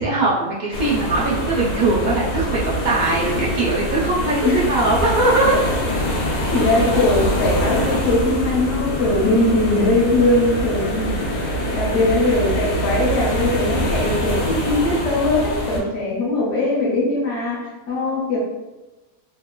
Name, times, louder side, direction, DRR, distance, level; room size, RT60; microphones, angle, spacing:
voice 1, 0.0-5.6, right 2 dB, 75° right, -7 dB, 0.4 m, -20 dB
sound 1, 0.7-15.8, equal, 85° left, 1.2 m, -24 dB
voice 2, 6.5-11.2 11.7-18.4, left 2 dB, 60° left, -3 dB, 0.9 m, -20 dB
2.9 x 2.2 x 2.2 m, 1.1 s
omnidirectional pair, 1.6 m